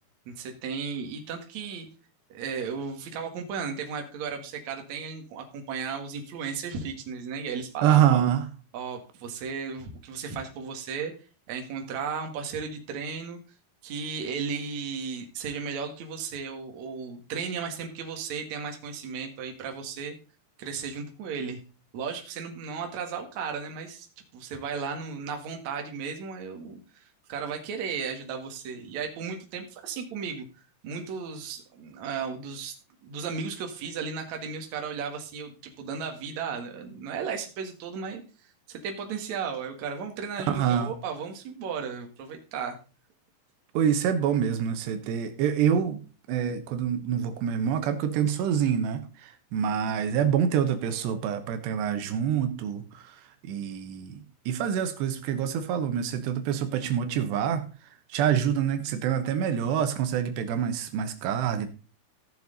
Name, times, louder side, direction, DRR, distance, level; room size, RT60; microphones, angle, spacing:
voice 1, 0.3-1.9 2.3-8.2 8.7-11.1 11.5-13.4 13.8-20.1 20.6-21.6 21.9-24.1 24.3-30.5 30.8-32.8 33.0-38.2 38.7-42.8, right 6 dB, 55° right, 2.6 m, -35 dB
voice 2, 7.8-8.5 40.5-40.9 43.7-46.0 46.3-53.1 53.4-57.7 58.1-61.7, right 9 dB, 85° right, 3.2 m, -26 dB
15.5 x 7.0 x 4.0 m
omnidirectional pair, 4.9 m